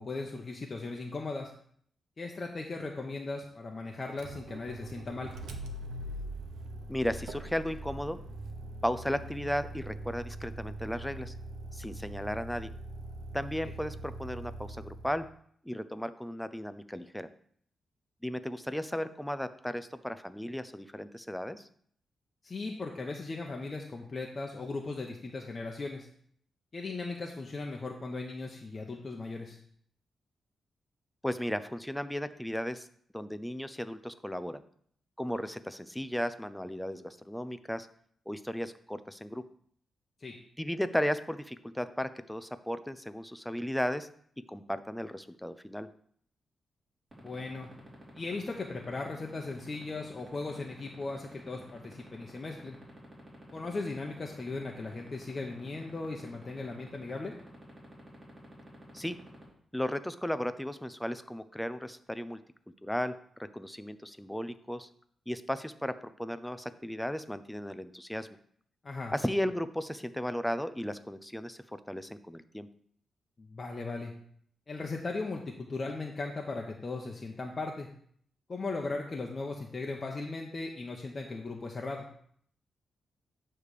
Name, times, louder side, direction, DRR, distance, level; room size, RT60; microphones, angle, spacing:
voice 1, 0.0-1.5 2.2-5.3 22.4-26.1 26.7-29.6 40.2-40.4 47.2-47.7 48.1-52.8 53.5-57.3 68.8-69.1 73.4-74.1 74.7-77.9 78.5-82.0, left 3 dB, 35° left, 1 dB, 0.9 m, -37 dB
Motor vehicle (road), 4.1-15.3, right 1 dB, 85° right, 0.9 m, -42 dB
voice 2, 6.9-8.2 8.8-11.3 11.7-12.7 13.3-15.3 15.6-17.3 18.2-21.7 31.2-32.9 33.1-34.6 35.2-37.9 38.3-39.4 40.6-44.1 44.5-45.9 58.9-59.2 59.7-62.4 62.8-64.9 65.3-65.9 66.2-68.3 69.1-72.7, equal, 5° left, 12 dB, 0.5 m, -35 dB
sound 1, 47.1-59.4, right 2 dB, 20° right, 3.7 m, -49 dB
9.1 x 3.3 x 6.7 m, 0.62 s
cardioid pair, 90°, 0 cm